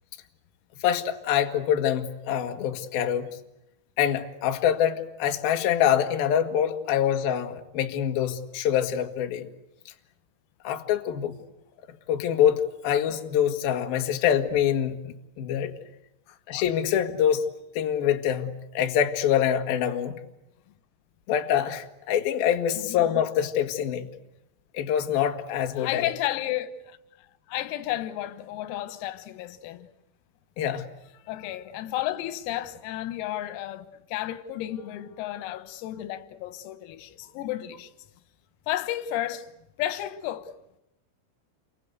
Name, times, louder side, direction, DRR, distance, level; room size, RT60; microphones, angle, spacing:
voice 1, 0.8-3.3 4.0-9.5 10.6-11.3 12.1-15.7 16.5-17.5 17.7-20.2 21.3-24.1 24.7-26.1 30.6-30.9, left 9 dB, 60° left, 2.9 m, -25 dB
voice 2, 25.8-27.0 27.5-29.9 31.3-37.9 38.7-39.5 39.8-40.5, left 13 dB, 90° left, 4.0 m, -32 dB
29.5 x 24.5 x 8.2 m
omnidirectional pair, 6.0 m